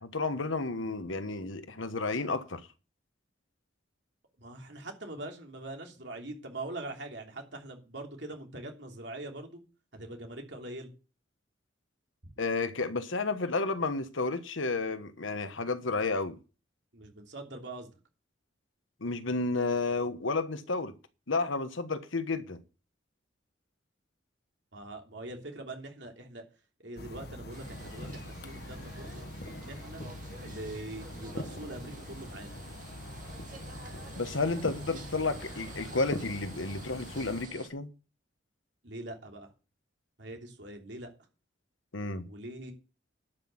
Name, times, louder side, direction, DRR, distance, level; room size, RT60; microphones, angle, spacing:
voice 1, 0.0-2.6 12.4-16.4 19.0-20.9 21.3-22.6 34.2-37.9 41.9-42.3, left 3 dB, 90° left, 1.3 m, -31 dB
voice 2, 4.4-9.6 9.9-10.9 16.9-17.9 24.7-26.4 26.8-30.0 30.4-32.6 38.8-39.5 40.2-41.1 42.2-42.7, right 2 dB, 65° right, 3.2 m, -43 dB
sound 1, 27.0-37.5, left 1 dB, 55° left, 1.4 m, -43 dB
sound 2, 27.5-37.7, right 3 dB, 40° right, 2.3 m, -50 dB
11.5 x 6.2 x 7.2 m
head